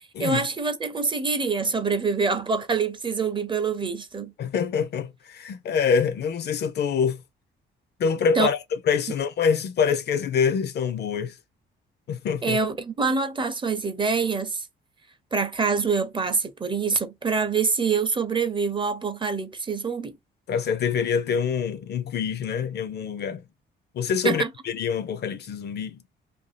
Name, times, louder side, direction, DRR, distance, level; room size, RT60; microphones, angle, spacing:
voice 1, 0.2-4.3 8.3-8.5 12.4-14.7 15.3-20.2 24.2-24.5, right 5 dB, 25° right, 0.5 m, -25 dB
voice 2, 4.4-7.2 8.0-8.6 8.9-11.3 12.1-12.6 20.5-23.4 23.9-26.0, left 6 dB, 55° left, 0.5 m, -25 dB
2.6 x 2.3 x 3.1 m
cardioid pair, 90°, 20 cm